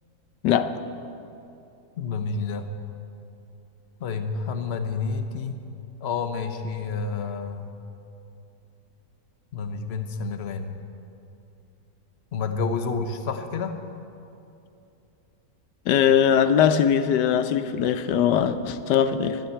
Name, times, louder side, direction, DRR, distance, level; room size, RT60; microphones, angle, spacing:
voice 1, 2.0-2.7 4.0-5.6 6.0-7.7 9.5-10.8 12.3-13.8, left 4 dB, 50° left, 7 dB, 0.9 m, -29 dB
voice 2, 15.9-19.4, left 8 dB, 90° left, 11 dB, 1.3 m, -21 dB
11.5 x 9.0 x 9.6 m, 2.7 s
omnidirectional pair, 1.8 m